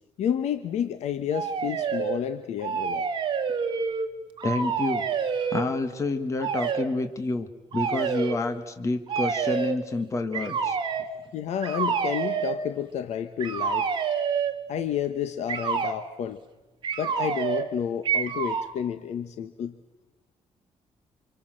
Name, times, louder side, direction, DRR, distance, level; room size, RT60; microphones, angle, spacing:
voice 1, 0.2-3.1 11.3-13.9 14.7-16.4 17.0-19.8, left 9 dB, 80° left, 10 dB, 1.2 m, -30 dB
sound 1, 1.3-2.2 2.6-4.1 4.4-5.7 6.4-6.9 7.7-8.4 9.1-9.8 10.3-11.1 11.6-12.6 13.4-14.6 15.5-16.0 16.8-17.7 18.0-18.7, right 6 dB, 45° right, 2.2 m, -28 dB
voice 2, 4.4-5.0 5.5-10.8, left 2 dB, 25° left, 8 dB, 1.8 m, -28 dB
27.5 x 27.0 x 7.8 m, 1.1 s
cardioid pair, 170°, 11 cm